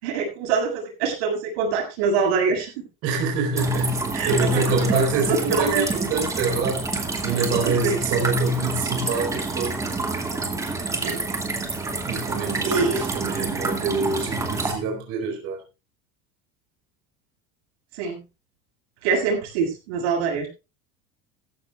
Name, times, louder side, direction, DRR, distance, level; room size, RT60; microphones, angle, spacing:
voice 1, 0.0-2.8 4.1-5.9 7.6-8.0 11.0-11.2 12.6-13.0 17.9-18.2 19.0-20.5, right 5 dB, 90° right, 6.9 m, -24 dB
voice 2, 3.0-4.0 4.3-9.8 12.1-15.6, right 3 dB, 45° right, 4.2 m, -25 dB
sound 1, 3.6-14.7, right 3 dB, 10° right, 2.1 m, -28 dB
16.0 x 14.5 x 2.4 m
cardioid pair, 175°, 31 cm